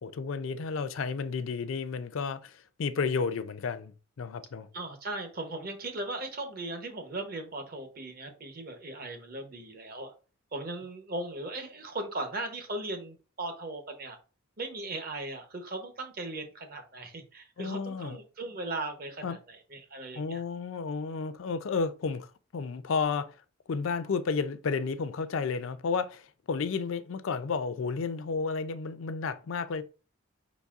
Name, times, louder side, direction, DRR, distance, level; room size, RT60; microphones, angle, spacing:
voice 1, 0.0-4.7 17.6-18.2 19.2-19.4 20.1-23.3 23.7-29.8, left 5 dB, 70° left, 0.4 m, -32 dB
voice 2, 4.7-10.1 10.5-14.2 14.6-20.4, right 2 dB, 45° right, 0.9 m, -38 dB
5.1 x 4.0 x 2.4 m
head